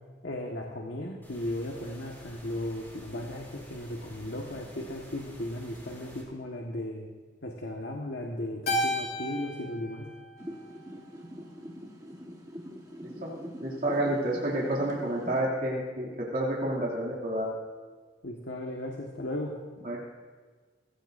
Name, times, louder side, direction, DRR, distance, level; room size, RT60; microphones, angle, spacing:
voice 1, 0.2-7.1 7.4-10.1 18.2-19.5, left 1 dB, 85° left, 0 dB, 1.6 m, -36 dB
sound 1, 1.2-6.2, equal, 10° left, 4.8 m, -50 dB
Keyboard (musical), 8.7-11.2, equal, 55° left, 2.7 m, -33 dB
sound 2, 10.4-15.4, equal, 20° right, 1.4 m, -43 dB
voice 2, 13.6-17.5 19.8-20.0, right 1 dB, 50° right, -5 dB, 2.7 m, -29 dB
22.5 x 16.5 x 2.7 m, 1.5 s
head